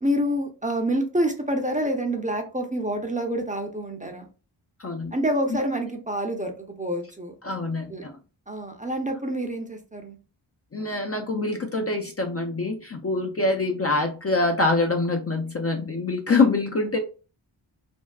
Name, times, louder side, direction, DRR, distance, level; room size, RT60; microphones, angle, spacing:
voice 1, 0.0-4.3 5.1-7.3 7.9-8.0 8.5-10.2, equal, 15° right, 4 dB, 0.6 m, -27 dB
voice 2, 4.8-5.1 7.4-8.1 10.7-17.0, left 3 dB, 30° left, 3 dB, 0.5 m, -25 dB
3.5 x 2.1 x 2.3 m, 0.35 s
cardioid pair, 40°, 49 cm